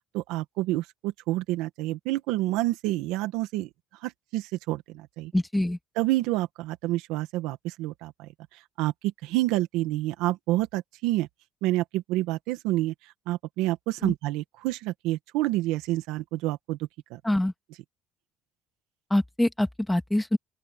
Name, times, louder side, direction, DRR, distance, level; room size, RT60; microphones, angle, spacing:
voice 1, 0.1-3.7 4.0-5.3 6.0-8.3 8.8-11.3 11.6-12.9 13.3-16.8 17.1-17.2, right 17 dB, 85° right, 1.9 m, -28 dB
voice 2, 5.3-5.8 14.0-14.1 17.2-17.5 19.1-20.4, left 1 dB, 5° left, 2.1 m, -25 dB
open air
supercardioid pair, 90°, 0 cm